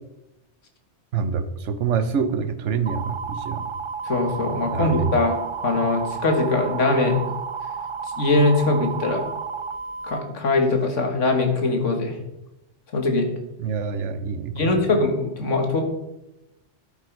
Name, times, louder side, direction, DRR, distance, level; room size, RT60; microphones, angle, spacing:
voice 1, 1.1-3.6 4.7-5.2 13.6-15.0, right 6 dB, 75° right, 10 dB, 1.2 m, -26 dB
sound 1, 2.9-10.2, right 6 dB, 45° right, 0.4 m, -32 dB
voice 2, 4.1-5.3 5.6-7.2 8.2-9.2 10.0-12.1 12.9-13.3 14.5-15.8, left 2 dB, 85° left, 4 dB, 2.1 m, -21 dB
11.0 x 8.9 x 4.6 m, 0.90 s
omnidirectional pair, 1.2 m